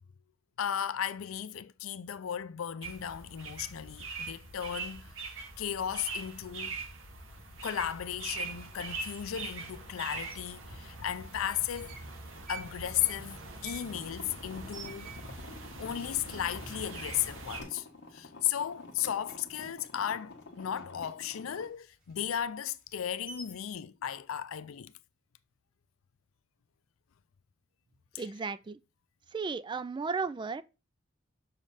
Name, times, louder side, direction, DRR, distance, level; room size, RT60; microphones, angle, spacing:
voice 1, 0.6-5.1 5.6-6.7 7.6-12.0 12.5-15.1 15.8-17.9 18.1-24.9 28.1-28.2, left 10 dB, 90° left, 0.5 m, -35 dB
sound 1, 2.8-17.6, right 3 dB, 75° right, 1.8 m, -43 dB
sound 2, 10.3-10.4 11.3-12.1 12.4-15.6 15.9-16.0 16.3-16.8 17.2-17.4 17.7-18.5 18.7-21.1 21.5-23.8, right 5 dB, 50° right, 4.5 m, -50 dB
sound 3, 13.9-21.7, left 3 dB, 60° left, 1.4 m, -50 dB
voice 2, 28.2-28.8 29.3-30.6, right 4 dB, 25° right, 0.3 m, -34 dB
6.4 x 5.2 x 5.6 m
head